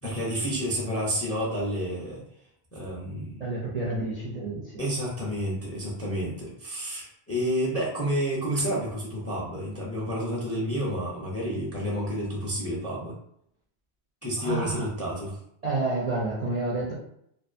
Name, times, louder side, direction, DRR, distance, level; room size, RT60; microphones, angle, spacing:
voice 1, 0.0-2.2 2.7-3.4 4.8-13.1 14.2-15.4, equal, 20° left, -5 dB, 0.4 m, -30 dB
voice 2, 3.4-4.8 14.4-14.9 15.6-16.9, right 2 dB, 50° right, -5 dB, 0.5 m, -29 dB
2.5 x 2.4 x 2.4 m, 0.74 s
omnidirectional pair, 1.1 m